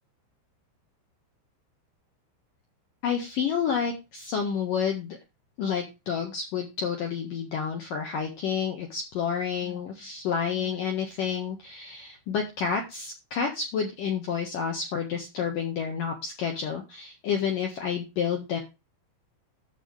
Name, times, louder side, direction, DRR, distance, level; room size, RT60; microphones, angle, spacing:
voice 1, 3.0-5.2 5.6-18.6, left 7 dB, 60° left, 2 dB, 2.4 m, -29 dB
12.0 x 7.5 x 3.4 m, 0.26 s
omnidirectional pair, 5.8 m